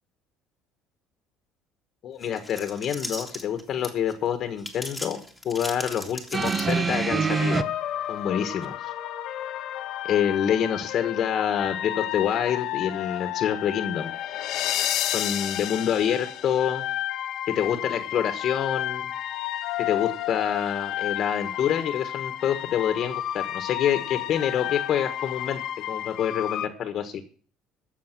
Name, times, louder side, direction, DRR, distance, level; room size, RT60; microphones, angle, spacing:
voice 1, 2.0-5.2 5.4-7.7 8.1-8.9 10.0-14.1 15.0-16.8 17.5-19.1 19.8-25.6 25.9-27.2, left 9 dB, 45° left, 8 dB, 1.5 m, -27 dB
sound 1, 2.2-4.1 4.6-7.0, left 1 dB, ahead, 2.3 m, -37 dB
sound 2, 6.3-7.6 8.6-8.7, right 5 dB, 20° right, 0.8 m, -24 dB
sound 3, 7.3-26.7, left 12 dB, 60° left, 1.3 m, -31 dB
17.5 x 7.1 x 6.1 m, 0.42 s
cardioid pair, 130°, 0 cm